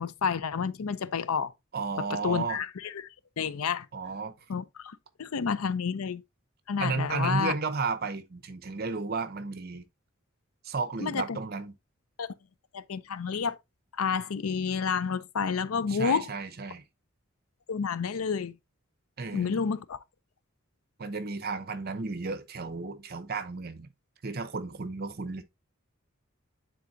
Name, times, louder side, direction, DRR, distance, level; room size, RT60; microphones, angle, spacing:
voice 1, 0.0-1.5 2.0-3.1 3.4-3.9 4.5-6.2 6.7-7.5 11.0-11.4 12.2-12.3 12.7-13.6 14.0-16.3 17.7-18.5 19.3-20.0, left 6 dB, 85° left, 0.5 m, -30 dB
voice 2, 1.7-2.6 3.9-4.3 6.8-9.8 10.6-11.7 15.9-16.8 19.2-19.7 21.0-23.9 24.2-25.4, right 4 dB, 45° right, 0.8 m, -33 dB
9.2 x 4.0 x 2.6 m
head